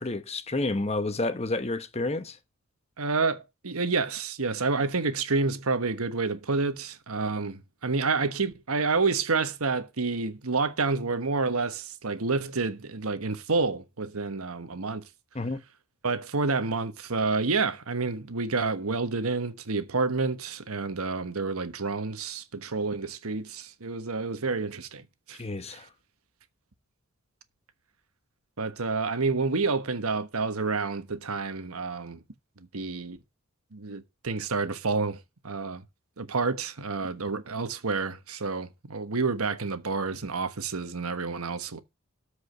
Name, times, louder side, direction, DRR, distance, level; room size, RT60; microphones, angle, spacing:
voice 1, 0.0-2.4 15.3-15.6 25.4-25.9, left 2 dB, 30° left, 1.0 m, -30 dB
voice 2, 3.0-15.1 16.0-25.4 25.7-25.8 28.6-32.2 32.7-33.2 33.7-35.8 36.2-41.8, right 4 dB, 90° right, 1.3 m, -29 dB
13.5 x 5.1 x 6.6 m
head